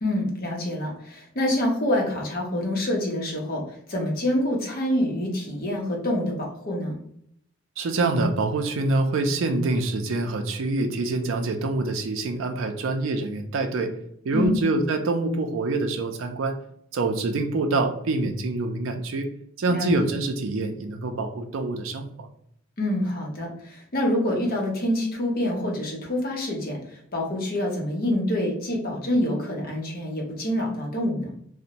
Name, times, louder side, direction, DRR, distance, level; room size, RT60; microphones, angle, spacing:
voice 1, 0.0-7.0 14.3-14.6 19.7-19.9 22.8-31.2, left 1 dB, 45° left, -1 dB, 0.7 m, -26 dB
voice 2, 7.8-13.9 14.2-16.6 16.9-19.3 19.6-22.3, right 2 dB, 75° right, 6 dB, 0.4 m, -25 dB
2.5 x 2.1 x 2.8 m, 0.70 s
head